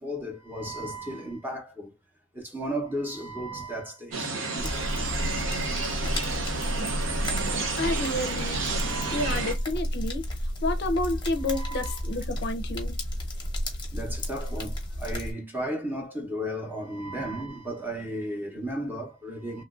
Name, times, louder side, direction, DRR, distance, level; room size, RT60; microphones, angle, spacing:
voice 1, 0.0-1.9 2.3-4.7 5.5-5.6 8.7-9.4 11.4-12.1 13.9-19.6, right 1 dB, 10° right, 0.8 m, -35 dB
birds with light stream and distant voices, 4.1-9.5, right 3 dB, 75° right, 0.8 m, -31 dB
sound 1, 4.6-15.3, equal, 25° left, 0.9 m, -32 dB
voice 2, 7.8-10.3 10.6-13.0, left 2 dB, 55° left, 0.5 m, -30 dB
3.0 x 2.4 x 2.4 m
head